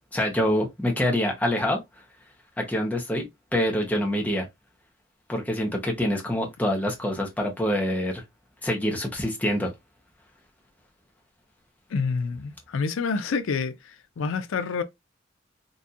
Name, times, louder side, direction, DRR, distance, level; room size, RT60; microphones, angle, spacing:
voice 1, 0.1-1.8 2.6-3.3 3.5-4.5 5.3-8.2 8.6-9.7, equal, 10° left, 0.8 m, -25 dB
voice 2, 11.9-14.8, left 5 dB, 90° left, 0.4 m, -28 dB
4.1 x 2.5 x 2.3 m
head